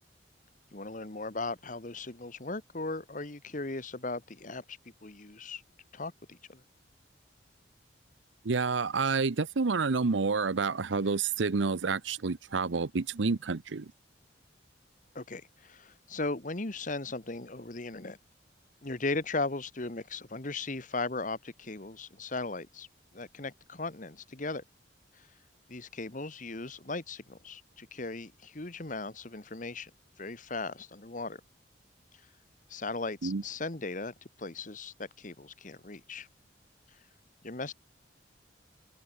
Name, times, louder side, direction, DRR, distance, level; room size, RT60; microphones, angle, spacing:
voice 1, 0.7-5.6 5.9-6.6 15.1-18.2 18.8-22.9 23.1-24.6 25.2-25.3 25.7-29.9 30.2-31.4 32.7-36.3 37.4-37.7, left 3 dB, 45° left, 1.6 m, -37 dB
voice 2, 8.4-13.9 33.2-33.4, right 4 dB, 85° right, 0.7 m, -29 dB
open air
head